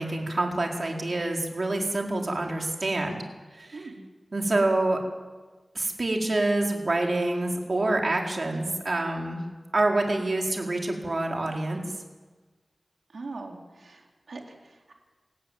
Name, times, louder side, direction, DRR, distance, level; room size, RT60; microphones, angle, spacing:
voice 1, 0.0-3.2 3.5-3.9 4.3-5.0 5.7-9.4 9.7-11.8, right 2 dB, 55° right, 1 dB, 4.5 m, -27 dB
voice 2, 13.1-14.9, right 3 dB, 90° right, 1 dB, 4.2 m, -41 dB
28.5 x 15.5 x 9.4 m, 1.3 s
wide cardioid pair, 70°, 0 cm